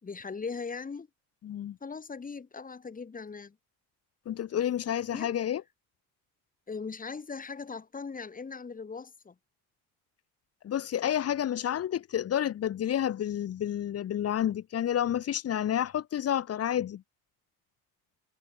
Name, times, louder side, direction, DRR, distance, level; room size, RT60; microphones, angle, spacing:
voice 1, 0.0-1.1 1.8-3.6 5.1-5.3 6.7-9.3, left 5 dB, 20° left, 6.6 m, -39 dB
voice 2, 1.4-1.8 4.2-5.6 10.6-17.0, left 10 dB, 40° left, 1.5 m, -30 dB
cardioid pair, 130°, 37 cm